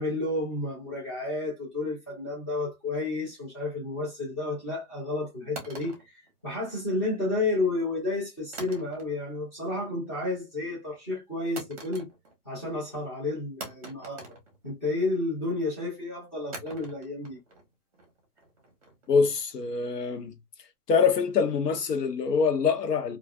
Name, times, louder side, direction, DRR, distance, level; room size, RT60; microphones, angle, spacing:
voice 1, 0.0-12.1 12.5-14.3 14.6-17.4, left 2 dB, 20° left, 0.5 m, -31 dB
sound 1, 5.6-7.0 8.5-9.4 9.7-10.1 11.6-12.5 12.8-12.9 13.6-15.1 16.5-19.5, right 2 dB, 25° right, 0.6 m, -45 dB
voice 2, 19.1-20.3 20.9-23.2, left 5 dB, 85° left, 0.9 m, -24 dB
2.4 x 2.3 x 2.3 m
hypercardioid pair, 165°, 47 cm